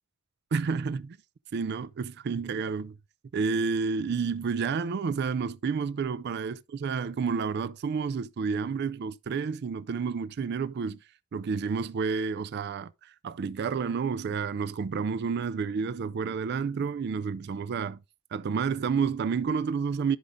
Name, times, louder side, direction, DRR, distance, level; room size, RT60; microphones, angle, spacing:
voice 1, 0.5-1.2 1.5-3.0 3.3-11.0 11.3-18.0 18.3-20.2, right 5 dB, 55° right, 0.4 m, -30 dB
12.5 x 5.0 x 2.6 m
head